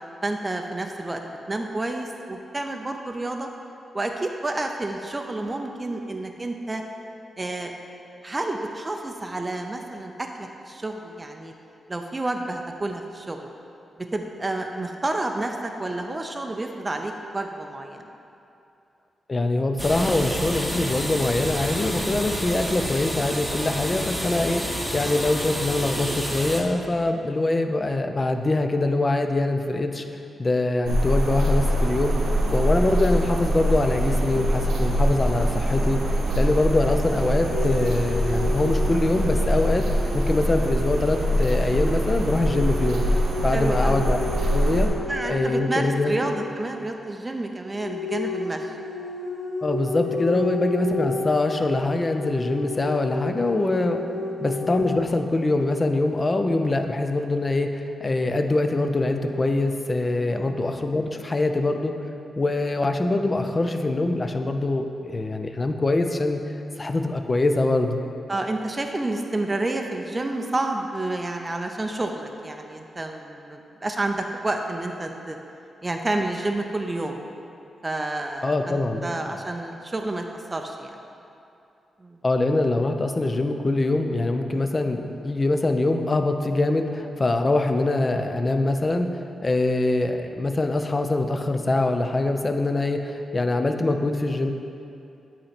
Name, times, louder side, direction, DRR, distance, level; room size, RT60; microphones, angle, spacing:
voice 1, 0.2-1.2 1.5-3.5 3.9-6.8 7.4-7.7 8.2-11.5 11.9-13.5 14.1-18.1 21.9-22.3 43.5-44.0 45.1-48.7 50.3-50.6 54.2-54.4 60.3-60.6 68.3-75.4 75.8-77.2 77.8-81.0 82.0-82.2 84.5-84.7, right 2 dB, 25° right, 3 dB, 0.4 m, -30 dB
voice 2, 19.3-30.0 30.4-39.9 40.1-43.0 43.4-44.2 44.5-44.9 45.3-46.1 49.6-54.0 54.4-61.9 62.4-66.4 66.8-68.0 78.4-79.1 82.2-89.1 89.4-94.5, left 2 dB, 35° left, 6 dB, 0.4 m, -23 dB
sound 1, 19.8-26.6, equal, ahead, 1.0 m, -29 dB
sound 2, 30.9-44.9, equal, 80° right, 0.8 m, -23 dB
sound 3, 37.5-46.6 47.7-55.1, left 3 dB, 80° left, 0.9 m, -33 dB
8.5 x 2.9 x 4.3 m, 2.6 s
cardioid pair, 65°, 0 cm